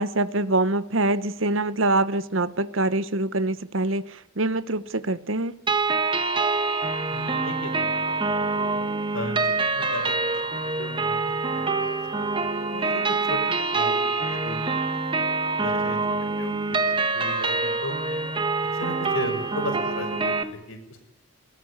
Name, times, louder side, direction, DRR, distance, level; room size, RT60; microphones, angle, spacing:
voice 1, 0.0-5.6, right 2 dB, 70° right, 1.1 m, -25 dB
sound 1, 5.7-20.4, right 3 dB, 25° right, 1.6 m, -25 dB
voice 2, 7.1-8.7 9.1-12.2 12.5-13.0 13.3-15.0 15.6-16.0 16.4-18.2 18.7-21.0, left 1 dB, 90° left, 6.3 m, -36 dB
21.5 x 18.0 x 9.9 m
head